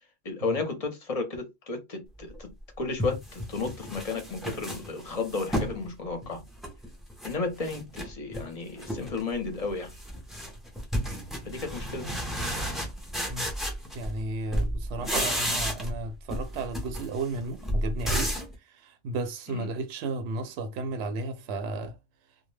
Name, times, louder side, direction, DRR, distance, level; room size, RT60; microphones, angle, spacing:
voice 1, 0.2-2.5 2.8-6.4 7.2-9.9 11.4-12.1 19.5-19.7, left 3 dB, 35° left, 0.7 m, -33 dB
sound 1, 2.3-2.4 3.0-5.8 6.2-7.3 7.6-8.5 8.8-9.2 9.5-14.3 14.5-16.0 16.3-18.5, equal, ahead, 0.4 m, -32 dB
voice 2, 13.9-22.0, right 2 dB, 70° right, 0.8 m, -34 dB
2.3 x 2.1 x 3.1 m
omnidirectional pair, 1.2 m